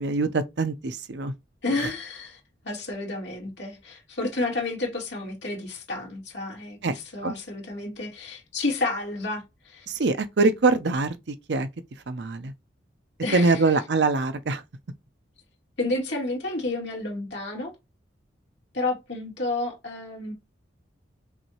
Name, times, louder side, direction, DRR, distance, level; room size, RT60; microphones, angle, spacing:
voice 1, 0.0-1.3 6.8-6.9 7.2-7.3 9.9-11.2 11.5-11.7 12.1-12.5 13.3-14.6, right 3 dB, 65° right, 0.6 m, -23 dB
voice 2, 1.6-2.4 2.6-9.9 13.2-13.8 15.8-17.7 18.7-20.3, left 2 dB, 70° left, 2.3 m, -31 dB
5.9 x 2.7 x 2.9 m
head